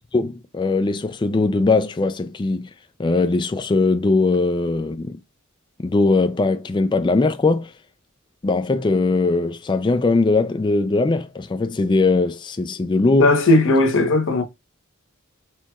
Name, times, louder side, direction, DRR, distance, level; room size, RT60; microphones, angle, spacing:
voice 1, 0.1-2.7 3.0-5.1 5.8-7.7 8.4-13.4, left 3 dB, 20° left, 0.3 m, -20 dB
voice 2, 13.2-14.4, left 2 dB, 60° left, 1.0 m, -16 dB
4.5 x 4.2 x 2.3 m
head